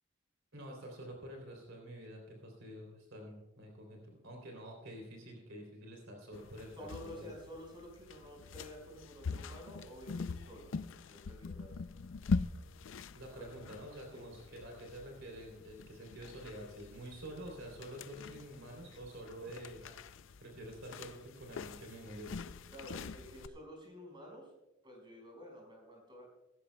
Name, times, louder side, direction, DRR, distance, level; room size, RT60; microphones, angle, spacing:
voice 1, 0.5-7.3 13.1-20.0 20.4-22.3, right 1 dB, 65° right, 1 dB, 3.3 m, -48 dB
sound 1, 6.3-23.5, left 4 dB, 65° left, 0.5 m, -43 dB
voice 2, 6.7-11.7 13.4-13.6 14.1-14.3 22.7-24.5 24.8-26.3, equal, 25° right, 0 dB, 5.1 m, -51 dB
18.0 x 15.0 x 2.3 m, 1.0 s
head